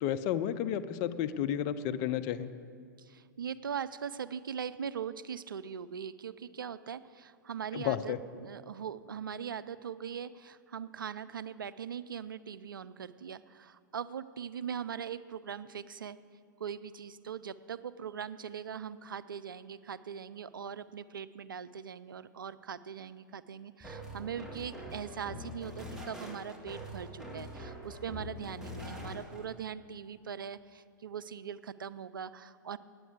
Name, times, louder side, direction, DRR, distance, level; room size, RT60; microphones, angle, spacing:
voice 1, 0.0-2.5 7.7-8.2, left 10 dB, 40° left, 11 dB, 0.5 m, -32 dB
voice 2, 3.0-16.2 16.6-32.8, right 7 dB, 80° right, 14 dB, 0.4 m, -41 dB
sound 1, 23.8-29.4, left 1 dB, 5° right, 1.8 m, -44 dB
9.3 x 8.4 x 8.0 m, 2.2 s
figure-of-eight pair, 105°, 11 cm